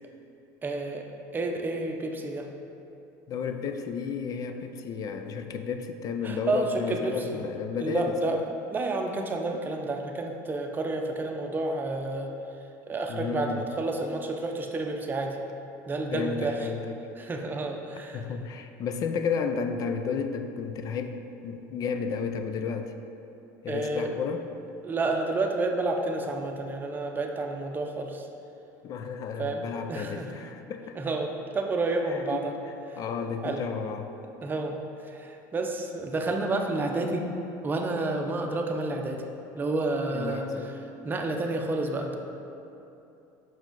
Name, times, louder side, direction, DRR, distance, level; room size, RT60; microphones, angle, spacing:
voice 1, 0.6-1.1 1.3-2.5 6.2-7.4 7.8-8.4 8.7-12.3 12.9-15.4 15.9-16.7 17.2-18.2 23.7-24.1 24.8-28.3 29.4-30.3 31.0-32.5 32.9-33.0 33.4-33.6 34.4-34.8 35.1-37.3 37.6-39.2 39.5-40.5 41.0-42.1, right 2 dB, 20° right, 2 dB, 0.6 m, -30 dB
voice 2, 3.3-8.4 13.1-13.6 16.1-17.1 18.1-22.9 23.6-24.4 28.8-31.0 32.1-32.5 33.0-34.1 40.1-40.8, left 6 dB, 45° left, 7 dB, 0.4 m, -32 dB
6.0 x 4.7 x 3.8 m, 2.8 s
supercardioid pair, 110°, 9 cm